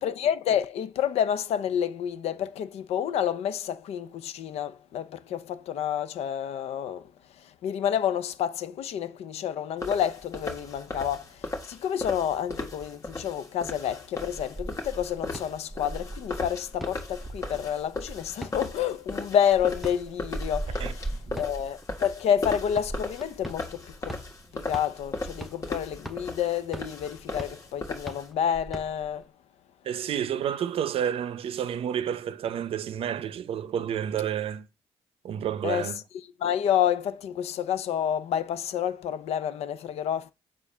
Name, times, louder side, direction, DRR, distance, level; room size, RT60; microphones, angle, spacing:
voice 1, 0.0-7.0 7.4-24.2 24.5-29.3 35.6-35.9 36.4-40.3, left 9 dB, 80° left, 0.6 m, -29 dB
sound 1, 9.8-28.3, left 2 dB, 30° left, 1.5 m, -37 dB
sound 2, 14.2-29.2, right 1 dB, ahead, 0.6 m, -40 dB
voice 2, 20.8-21.5 29.8-34.7 35.2-36.0, right 9 dB, 65° right, 0.6 m, -30 dB
7.1 x 2.4 x 5.5 m
cardioid pair, 120°, 11 cm